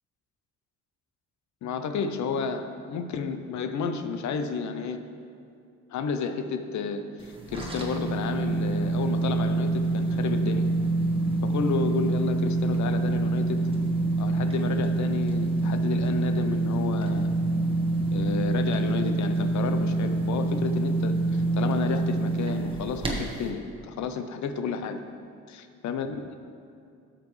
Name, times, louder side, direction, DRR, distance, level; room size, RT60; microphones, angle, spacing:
voice 1, 1.6-5.0 5.9-10.7 11.4-13.6 14.2-17.3 18.1-25.0 25.5-26.3, left 5 dB, 70° left, 9 dB, 0.7 m, -31 dB
sound 1, 7.2-23.5, right 2 dB, 20° right, 1.4 m, -26 dB
12.0 x 7.5 x 3.2 m, 2.4 s
cardioid pair, 90°, 30 cm